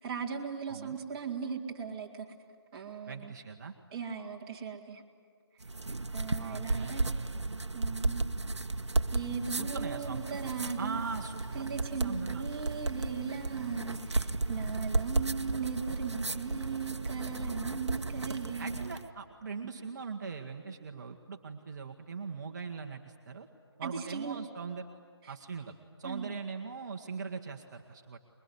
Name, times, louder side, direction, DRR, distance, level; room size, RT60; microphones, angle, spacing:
voice 1, 0.0-2.3 2.7-3.3 3.9-5.0 6.1-7.1 7.7-8.2 9.1-11.0 11.5-18.9 23.8-24.4 25.2-25.3 26.0-26.3, right 6 dB, 15° right, -2 dB, 2.3 m, -38 dB
voice 2, 0.7-1.0 3.1-3.8 6.4-7.0 9.6-10.4 10.8-12.4 18.6-23.5 23.8-24.9 25.3-28.2, right 5 dB, 40° right, 3 dB, 1.5 m, -41 dB
sound 1, 5.6-19.1, right 2 dB, 90° right, 1.2 m, -34 dB
24.5 x 22.0 x 9.7 m, 2.2 s
figure-of-eight pair, 155°, 14 cm